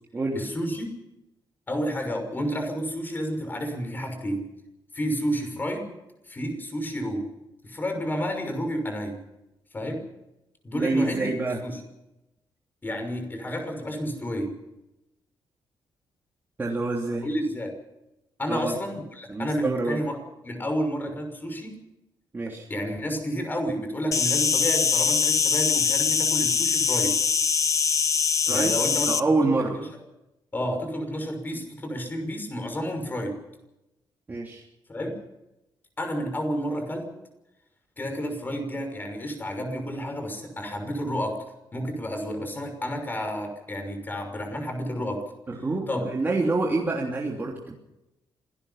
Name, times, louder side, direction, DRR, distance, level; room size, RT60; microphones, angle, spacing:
voice 1, 0.3-0.9 1.7-4.5 4.9-5.9 6.3-7.3 7.6-9.2 9.7-10.1 10.6-11.3 11.6-11.8 12.8-14.6 17.2-17.8 18.4-21.8 22.5-27.2 28.5-29.1 29.4-29.8 30.5-33.4 34.9-35.2 36.0-37.1 38.0-41.4 41.7-45.2 45.9-46.1, equal, 20° left, 5 dB, 6.1 m, -30 dB
voice 2, 10.7-11.6 16.6-17.3 18.5-18.7 19.3-20.0 22.3-22.7 28.5-28.7 29.1-29.8 34.3-34.6 45.5-47.7, right 3 dB, 25° right, -2 dB, 3.2 m, -26 dB
Insect, 24.1-29.2, left 6 dB, 40° left, 0.9 m, -23 dB
26.5 x 18.5 x 5.8 m, 0.94 s
cardioid pair, 140°, 9 cm